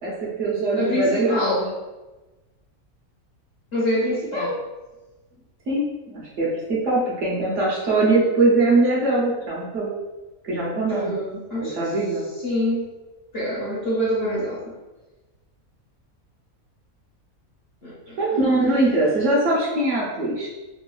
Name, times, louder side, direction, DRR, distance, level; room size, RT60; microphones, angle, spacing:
voice 1, 0.0-1.5 4.3-4.5 5.7-9.9 10.4-11.1 11.6-12.2 18.2-20.5, right 2 dB, 65° right, -4 dB, 1.0 m, -22 dB
voice 2, 0.7-1.7 3.7-4.6 10.9-11.8 12.4-12.9 13.3-14.7 17.8-18.2, equal, 55° left, -7 dB, 0.8 m, -25 dB
3.0 x 2.2 x 2.3 m, 1.1 s
omnidirectional pair, 1.5 m